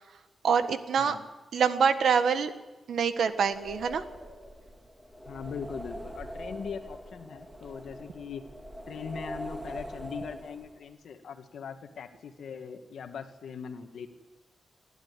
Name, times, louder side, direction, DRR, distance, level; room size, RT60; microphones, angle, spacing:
voice 1, 0.4-1.1 1.5-2.5 2.9-4.0, right 6 dB, 70° right, 10 dB, 1.5 m, -25 dB
sound 1, 3.3-10.9, equal, 5° right, 2.2 m, -43 dB
voice 2, 5.2-8.4 8.9-14.1, left 6 dB, 75° left, 6 dB, 1.7 m, -40 dB
27.0 x 11.5 x 9.8 m, 1.2 s
wide cardioid pair, 140°, 0 cm